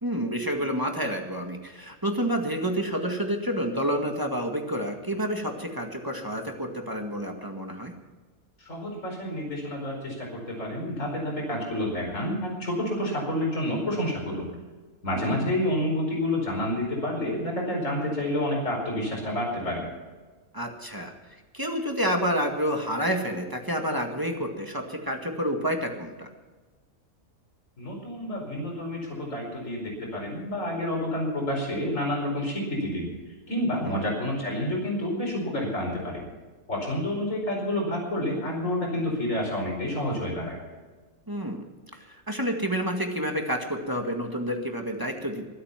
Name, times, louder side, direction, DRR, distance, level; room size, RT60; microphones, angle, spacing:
voice 1, 0.0-7.9 15.1-15.4 20.5-26.3 33.7-34.0 41.3-41.6 41.9-45.5, equal, 15° right, 3 dB, 1.9 m, -29 dB
voice 2, 8.6-14.5 15.0-19.9 27.8-33.1 33.5-36.2 36.7-40.6, left 1 dB, 60° left, -1 dB, 5.2 m, -29 dB
23.5 x 8.5 x 5.9 m, 1.3 s
omnidirectional pair, 1.5 m